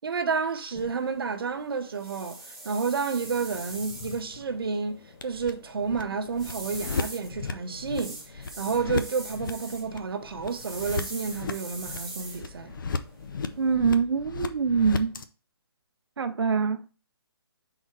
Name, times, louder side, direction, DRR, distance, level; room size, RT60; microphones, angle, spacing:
voice 1, 0.0-2.4 2.6-12.7, right 5 dB, 60° right, 0.8 m, -30 dB
sound 1, 0.7-13.7, right 2 dB, ahead, 0.8 m, -44 dB
sound 2, 3.2-15.2, left 4 dB, 55° left, 0.6 m, -37 dB
voice 2, 13.6-15.2 16.2-16.8, right 5 dB, 85° right, 0.5 m, -24 dB
5.8 x 4.1 x 4.5 m
hypercardioid pair, 160°, 13 cm